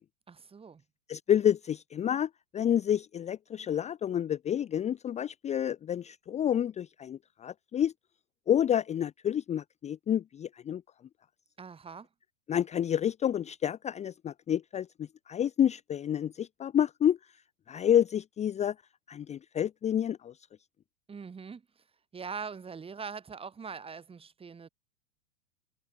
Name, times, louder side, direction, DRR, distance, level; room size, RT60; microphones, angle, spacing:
voice 1, 0.3-0.8 11.6-12.1 21.1-21.8 22.1-24.7, right 5 dB, 15° right, 2.6 m, -42 dB
voice 2, 1.1-7.9 8.5-10.8 12.5-14.9 15.3-17.2 17.7-18.7 19.1-20.3, left 9 dB, 20° left, 0.8 m, -29 dB
hypercardioid pair, 105°, 37 cm